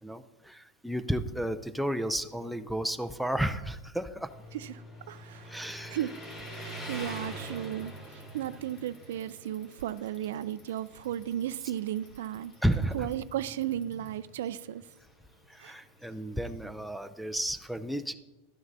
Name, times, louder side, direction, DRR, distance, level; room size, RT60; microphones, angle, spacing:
voice 1, 0.0-4.3 5.5-6.0 12.6-13.1 15.5-18.1, right 1 dB, ahead, 7 dB, 0.4 m, -32 dB
Motorcycle, 4.2-16.9, equal, 25° left, 2.6 m, -46 dB
voice 2, 4.5-5.6 5.9-12.5 12.9-14.8 15.6-15.8, right 11 dB, 80° right, 16 dB, 0.3 m, -35 dB
Bicycle, 5.5-14.2, left 3 dB, 60° left, 2.3 m, -62 dB
11.5 x 9.5 x 2.6 m, 1.1 s
supercardioid pair, 145°, 0 cm